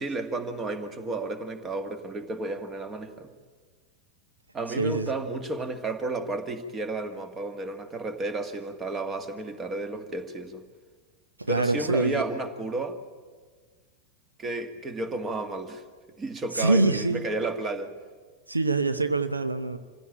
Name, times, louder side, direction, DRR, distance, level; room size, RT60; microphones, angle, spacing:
voice 1, 0.0-3.3 4.5-10.6 11.5-13.0 14.4-15.8 16.2-17.9, right 2 dB, 20° right, 1.9 m, -32 dB
voice 2, 4.8-5.1 11.4-12.2 16.5-17.2 18.5-19.8, right 2 dB, 80° right, 0.8 m, -25 dB
26.5 x 16.5 x 8.7 m
figure-of-eight pair, 90°, 0 cm